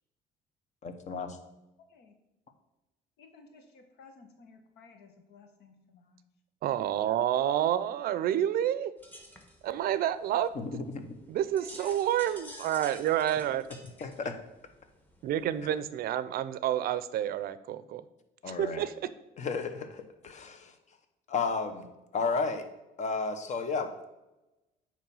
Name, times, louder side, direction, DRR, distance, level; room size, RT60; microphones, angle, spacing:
voice 1, 0.8-1.4 10.5-11.1 14.0-14.3 18.4-18.9 19.4-20.8 21.3-21.9 22.1-22.7 23.0-23.9, left 4 dB, 45° left, 8 dB, 0.9 m, -33 dB
voice 2, 3.2-6.2 11.5-12.0 12.3-12.4 12.7-12.8 13.5-13.6 14.0-14.3, left 5 dB, 75° left, 6 dB, 1.2 m, -55 dB
voice 3, 6.6-8.9 9.6-10.5 11.3-13.7 15.2-18.0 18.5-18.9, right 11 dB, 65° right, 14 dB, 0.5 m, -29 dB
sound 1, 9.0-15.9, equal, 10° left, 1.2 m, -51 dB
8.8 x 3.1 x 5.4 m, 0.98 s
cardioid pair, 110°, 17 cm